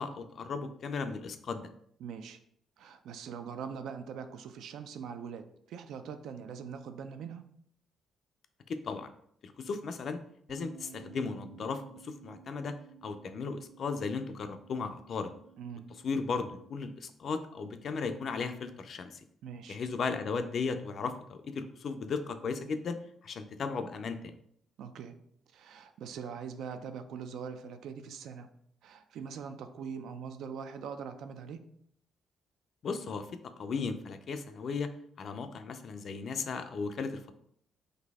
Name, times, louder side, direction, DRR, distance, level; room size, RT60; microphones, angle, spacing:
voice 1, 0.0-1.7 8.7-9.1 9.4-10.2 10.5-12.7 13.0-15.3 16.0-19.2 19.7-23.0 23.2-24.4 32.8-34.9 35.2-37.3, left 4 dB, 45° left, 9 dB, 0.3 m, -36 dB
voice 2, 2.0-2.4 2.8-7.4 15.6-15.9 19.4-19.8 24.8-25.2 25.5-28.5 28.8-31.6, right 6 dB, 75° right, 9 dB, 0.4 m, -42 dB
sound 1, 10.5-16.7, right 9 dB, 40° right, 1.0 m, -55 dB
4.0 x 2.6 x 3.4 m, 0.67 s
cardioid pair, 150°, 0 cm